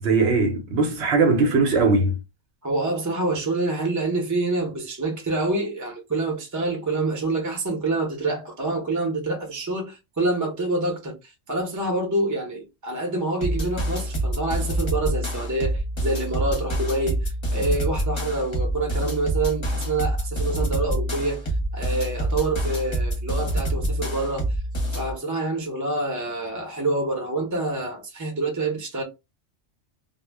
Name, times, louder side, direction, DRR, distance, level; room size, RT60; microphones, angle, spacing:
voice 1, 0.0-2.2, right 3 dB, 70° right, 0.9 m, -20 dB
voice 2, 2.6-24.5 24.9-29.0, right 2 dB, 20° right, 0.6 m, -27 dB
sound 1, 13.4-25.1, right 1 dB, 30° left, 0.6 m, -26 dB
2.2 x 2.1 x 3.3 m
omnidirectional pair, 1.2 m